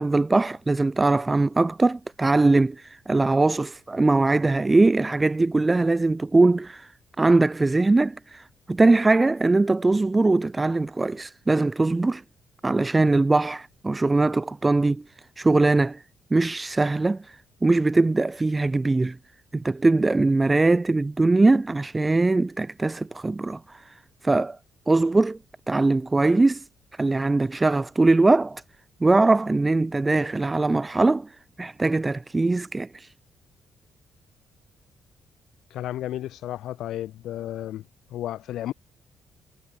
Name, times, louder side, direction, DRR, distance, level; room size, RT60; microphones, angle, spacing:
voice 1, 0.0-6.9 7.2-12.2 12.6-15.0 15.4-16.0 16.3-19.2 19.5-23.9 24.2-24.6 24.9-25.4 25.7-26.7 27.0-28.6 29.0-31.3 31.6-33.1, right 2 dB, 20° right, 1.7 m, -21 dB
voice 2, 35.7-38.7, left 13 dB, 80° left, 2.2 m, -33 dB
cardioid pair, 90°, 0 cm